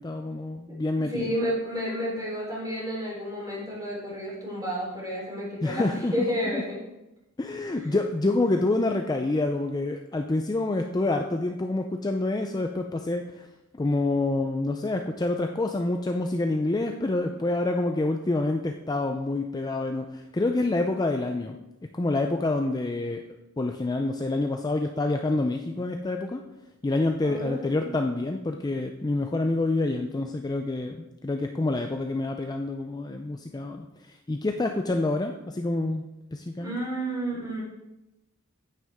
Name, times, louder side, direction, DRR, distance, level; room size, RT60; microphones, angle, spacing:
voice 1, 0.0-1.3 5.6-6.2 6.5-6.6 7.4-13.5 13.8-21.6 21.9-23.2 23.6-26.4 26.8-36.1 36.3-36.7, left 2 dB, 20° left, 4 dB, 0.4 m, -27 dB
voice 2, 1.1-5.8 6.1-6.8 7.7-8.0 27.2-28.0 36.6-37.6, equal, 20° right, -5 dB, 3.7 m, -31 dB
9.2 x 9.1 x 3.5 m, 0.97 s
head